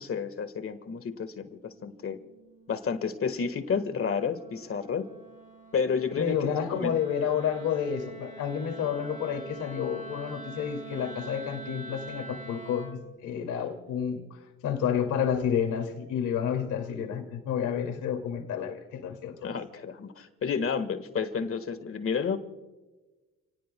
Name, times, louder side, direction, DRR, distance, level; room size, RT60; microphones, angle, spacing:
voice 1, 0.0-2.2 2.7-5.1 5.7-7.0 19.4-22.4, left 6 dB, 45° left, 9 dB, 1.6 m, -31 dB
Wind instrument woodwind instrument, 1.5-13.0, right 3 dB, 25° right, 3.9 m, -46 dB
voice 2, 6.2-14.2 14.6-19.5, left 8 dB, 85° left, 4 dB, 2.5 m, -30 dB
30.0 x 18.5 x 2.3 m, 1.2 s
cardioid pair, 90°, 30 cm